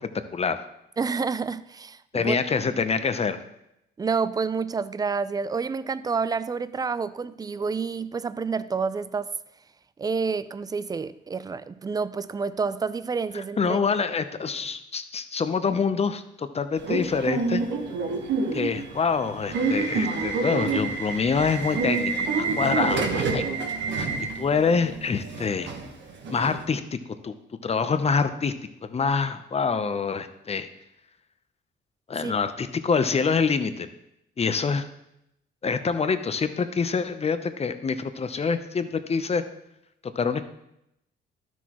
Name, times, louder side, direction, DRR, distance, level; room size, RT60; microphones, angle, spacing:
voice 1, 1.0-2.4 4.0-9.3 10.0-13.8 32.2-32.3, right 5 dB, 20° right, 0.3 m, -29 dB
voice 2, 2.1-3.4 13.3-17.6 18.5-22.1 22.4-23.6 23.9-24.1 24.4-25.7 26.3-27.0 27.2-27.3 27.6-28.5 28.9-30.7 32.1-33.9 34.4-34.9 35.6-39.4 40.2-40.4, left 5 dB, 30° left, 0.7 m, -26 dB
Subway metro underground / Alarm, 16.8-26.6, right 4 dB, 65° right, 1.3 m, -28 dB
12.0 x 6.2 x 3.0 m
cardioid pair, 90°, 20 cm